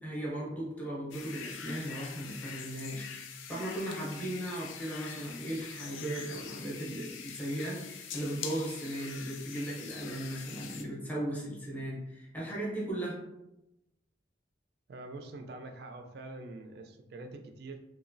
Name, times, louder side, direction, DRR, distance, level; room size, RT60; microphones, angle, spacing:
voice 1, 0.0-7.8 8.1-13.2, right 1 dB, 10° left, -5 dB, 0.6 m, -37 dB
sound 1, 1.1-10.8, left 7 dB, 90° left, 0.3 m, -44 dB
voice 2, 14.9-17.8, right 2 dB, 55° right, 5 dB, 0.3 m, -45 dB
3.0 x 2.2 x 2.5 m, 0.92 s
head